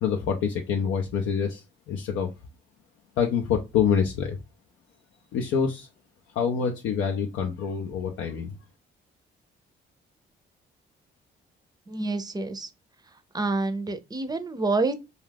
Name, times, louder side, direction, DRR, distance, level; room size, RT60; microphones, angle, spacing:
voice 1, 0.0-2.3 3.2-4.4 5.3-5.9 6.3-8.5, left 7 dB, 85° left, 0.5 m, -26 dB
voice 2, 11.9-12.7 13.3-14.9, right 3 dB, 20° right, 0.5 m, -27 dB
2.4 x 2.3 x 3.3 m
cardioid pair, 75°, 21 cm